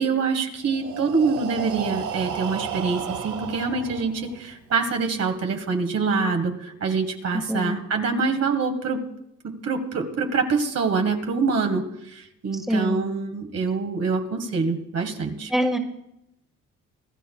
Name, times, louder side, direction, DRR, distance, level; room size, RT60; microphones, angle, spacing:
voice 1, 0.0-9.0 9.4-15.5, right 4 dB, 55° right, 4 dB, 1.6 m, -25 dB
Breathing, 0.7-4.5, right 7 dB, 75° right, 1.4 m, -33 dB
voice 2, 7.5-7.8 12.7-13.1 15.5-15.8, equal, ahead, 4 dB, 1.7 m, -24 dB
25.5 x 11.5 x 2.3 m, 0.81 s
cardioid pair, 90°, 30 cm